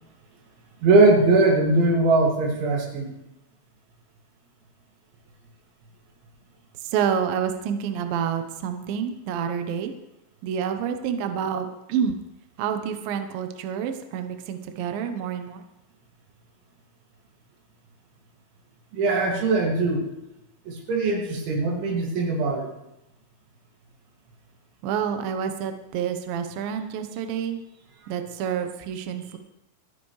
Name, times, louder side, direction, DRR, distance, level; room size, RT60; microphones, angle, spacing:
voice 1, 0.8-3.1 18.9-20.1 20.7-22.7, right 2 dB, 70° right, -1 dB, 4.7 m, -20 dB
voice 2, 6.8-9.9 10.4-12.2 12.6-15.6 24.8-27.6 28.1-29.4, right 8 dB, 85° right, 7 dB, 2.0 m, -28 dB
27.0 x 10.0 x 3.3 m, 0.89 s
omnidirectional pair, 5.7 m